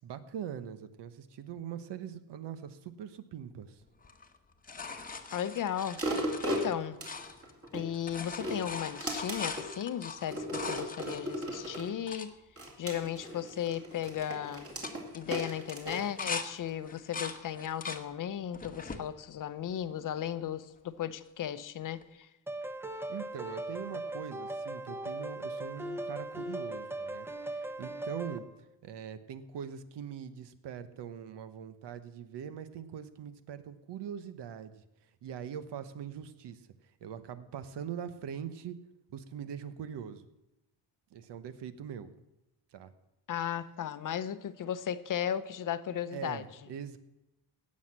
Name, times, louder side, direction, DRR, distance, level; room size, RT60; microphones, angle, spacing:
voice 1, 0.0-3.8 23.1-28.5 28.8-34.8 35.2-38.8 39.1-40.3 41.1-42.1 42.7-42.9 46.1-47.0, right 8 dB, 80° right, 1.1 m, -42 dB
sound 1, 4.0-7.7 7.9-12.3 12.9-13.0 13.2-13.6 13.9-14.2 14.7-16.5 16.8-18.0 18.5-19.0 19.7-20.4 22.0-22.1, left 4 dB, 20° left, 1.0 m, -41 dB
voice 2, 5.3-6.0 6.4-7.0 7.7-12.3 12.8-14.7 15.1-22.3 43.3-46.4, left 10 dB, 50° left, 0.7 m, -35 dB
sound 2, 6.0-7.8 8.3-9.7 10.3-11.9 12.6-16.7 17.3-17.4, equal, 35° right, 2.6 m, -36 dB
sound 3, 22.5-28.4, right 1 dB, 5° right, 0.7 m, -38 dB
17.0 x 6.5 x 7.4 m
cardioid pair, 150°, 41 cm